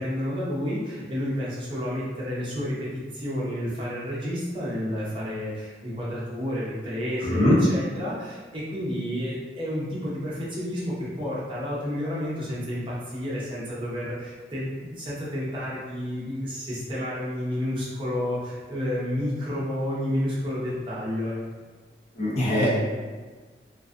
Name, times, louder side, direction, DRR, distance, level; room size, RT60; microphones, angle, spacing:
voice 1, 0.0-21.4, equal, 30° right, -7 dB, 0.7 m, -30 dB
voice 2, 7.2-7.6 22.1-22.8, left 1 dB, 40° left, -6 dB, 0.7 m, -21 dB
2.5 x 2.3 x 2.4 m, 1.4 s
head